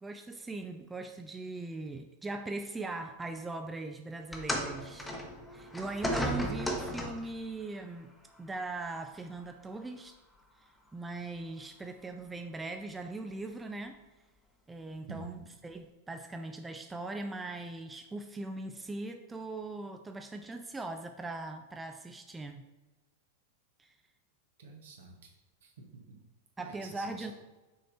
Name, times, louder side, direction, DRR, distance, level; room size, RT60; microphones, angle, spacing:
voice 1, 0.0-5.1 5.5-8.1 8.4-10.2 10.9-14.0 14.7-15.4 15.6-22.6 23.8-23.9 26.6-27.3, right 2 dB, 10° right, 6 dB, 0.4 m, -40 dB
sound 1, 4.3-7.4 8.4-8.5 9.4-9.5, equal, 10° left, 1.0 m, -34 dB
voice 2, 15.1-15.5 24.6-25.3 25.6-26.2 26.6-27.3, right 3 dB, 65° right, 2 dB, 1.3 m, -49 dB
6.2 x 4.2 x 4.1 m, 1.1 s
figure-of-eight pair, 95°, 0 cm